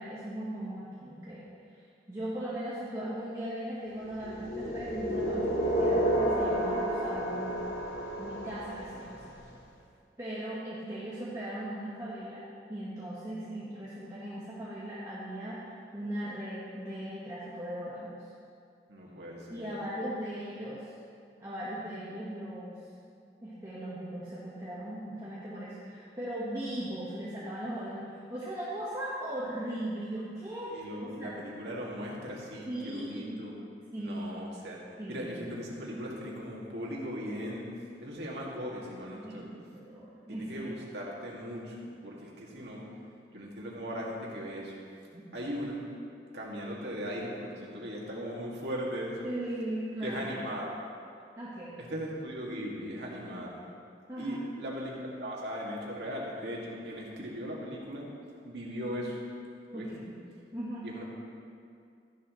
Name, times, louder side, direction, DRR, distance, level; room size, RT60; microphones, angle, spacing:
voice 1, 0.0-1.5 2.1-7.7 8.2-9.3 10.2-12.4 12.7-18.1 19.5-20.9 21.4-22.8 23.4-31.3 32.6-33.4 33.9-34.2 35.0-35.4 39.2-40.7 45.1-45.3 49.2-50.4 51.4-51.8 54.1-54.5 59.7-60.2 60.5-60.9, right 1 dB, 20° right, -9 dB, 1.5 m, -38 dB
sound 1, 4.2-9.2, right 1 dB, 75° left, 2.2 m, -30 dB
voice 2, 18.9-19.9 30.7-33.5 34.0-34.8 35.1-37.7 38.0-39.5 40.3-42.8 43.3-44.7 45.3-45.8 46.3-49.3 50.0-50.7 51.8-53.6 54.2-58.1 58.4-59.2 59.7-59.9 60.8-61.0, equal, 75° right, -4 dB, 2.3 m, -38 dB
14.0 x 11.0 x 3.2 m, 2.4 s
head